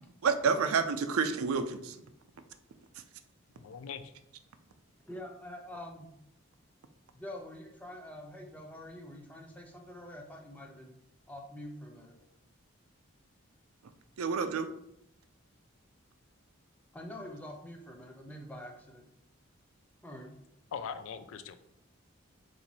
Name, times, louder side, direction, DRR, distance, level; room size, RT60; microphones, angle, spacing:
voice 1, 0.2-1.9 14.2-14.7, right 5 dB, 85° right, 9 dB, 0.4 m, -29 dB
voice 2, 3.6-4.1 20.7-21.6, left 6 dB, 75° left, 11 dB, 0.4 m, -41 dB
voice 3, 5.1-6.1 7.1-10.9 11.3-12.2 16.9-19.1 20.0-20.4, left 1 dB, 5° left, 1 dB, 0.5 m, -46 dB
4.4 x 2.6 x 4.0 m, 0.78 s
head